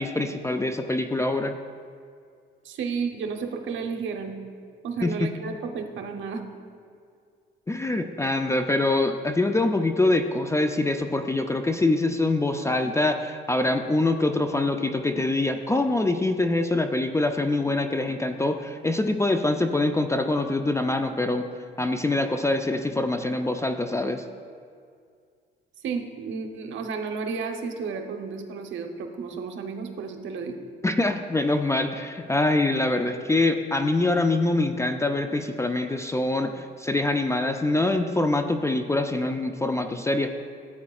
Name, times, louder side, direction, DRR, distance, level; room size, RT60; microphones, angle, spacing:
voice 1, 0.0-1.5 5.0-5.3 7.7-21.5 21.8-24.2 30.8-40.3, left 2 dB, 15° left, 6 dB, 0.4 m, -24 dB
voice 2, 2.6-4.4 4.8-6.4 25.8-30.6, right 5 dB, 75° right, 5 dB, 0.9 m, -32 dB
13.5 x 8.4 x 2.4 m, 2.2 s
cardioid pair, 90°, 20 cm